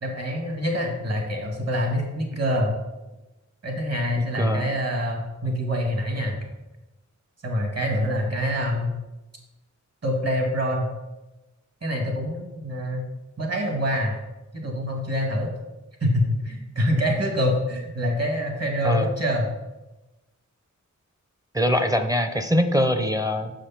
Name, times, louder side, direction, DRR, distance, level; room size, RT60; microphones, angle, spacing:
voice 1, 0.0-2.7 3.6-6.4 7.4-8.9 10.0-10.9 11.8-13.0 13.4-14.2 14.5-15.5 16.0-19.5, equal, 55° right, 1 dB, 1.9 m, -25 dB
voice 2, 4.2-4.7 7.9-8.1 18.8-19.1 21.5-23.5, equal, 10° right, 7 dB, 0.6 m, -23 dB
6.7 x 5.1 x 5.7 m, 1.0 s
wide cardioid pair, 80°, 30 cm